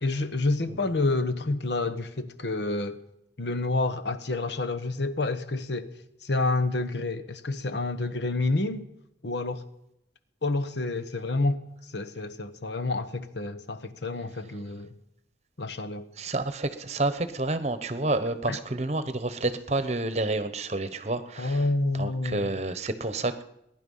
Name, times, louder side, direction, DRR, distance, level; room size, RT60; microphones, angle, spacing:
voice 1, 0.0-3.0 3.4-5.9 6.2-8.9 9.2-9.6 10.4-14.9 15.6-16.0 18.5-18.6 21.4-22.5, left 2 dB, 80° left, 1.1 m, -29 dB
voice 2, 16.2-21.6 21.9-23.4, right 2 dB, 40° right, 0.9 m, -29 dB
22.0 x 11.0 x 5.5 m
head